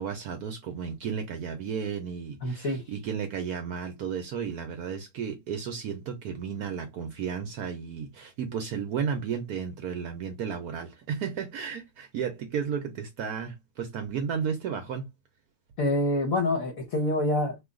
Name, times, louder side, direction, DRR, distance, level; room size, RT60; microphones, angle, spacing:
voice 1, 0.0-15.1, right 7 dB, 70° right, 0.9 m, -33 dB
voice 2, 2.4-2.9 15.8-17.6, left 1 dB, 65° left, 0.9 m, -26 dB
3.1 x 2.3 x 3.5 m
omnidirectional pair, 2.1 m